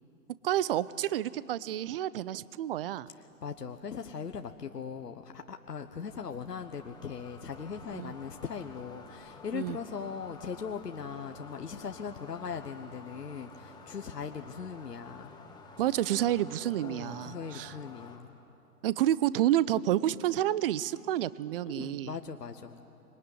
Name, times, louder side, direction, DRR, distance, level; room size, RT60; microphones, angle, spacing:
voice 1, 0.4-3.1 7.9-8.1 9.5-9.8 15.8-17.7 18.8-22.1, right 12 dB, 40° right, 19 dB, 0.6 m, -29 dB
voice 2, 3.4-15.4 16.8-18.3 21.6-22.8, left 6 dB, 85° left, 6 dB, 1.2 m, -40 dB
sound 1, 5.7-18.2, left 4 dB, 10° left, 2.1 m, -51 dB
26.0 x 22.0 x 9.8 m, 2.8 s
figure-of-eight pair, 120°, 47 cm